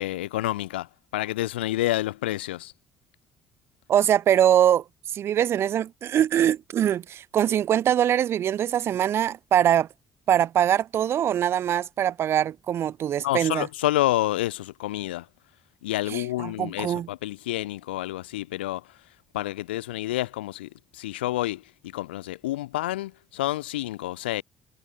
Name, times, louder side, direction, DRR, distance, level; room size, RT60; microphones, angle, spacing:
voice 1, 0.0-2.7 13.2-15.3 15.8-19.0 19.3-24.4, left 16 dB, 75° left, 0.7 m, -29 dB
voice 2, 3.9-4.8 5.1-9.9 10.3-13.7 16.1-17.1, right 10 dB, 45° right, 0.7 m, -23 dB
figure-of-eight pair, 50°, 6 cm